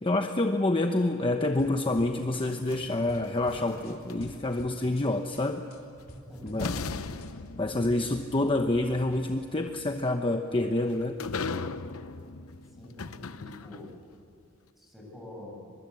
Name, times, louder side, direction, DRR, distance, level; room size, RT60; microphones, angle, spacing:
voice 1, 0.0-5.6 6.4-6.7 7.6-11.2, left 2 dB, 25° left, 5 dB, 0.9 m, -27 dB
sound 1, 1.6-2.8 3.1-4.3 4.6-5.0 5.3-7.3, left 1 dB, 45° left, 3.6 m, -49 dB
sound 2, 2.4-4.8 6.0-6.1 6.6-14.1, left 4 dB, 90° left, 0.9 m, -39 dB
voice 2, 6.1-7.2 7.6-8.4 12.7-13.9 14.8-15.7, left 1 dB, ahead, -1 dB, 7.3 m, -46 dB
24.0 x 22.5 x 8.4 m, 2.5 s
head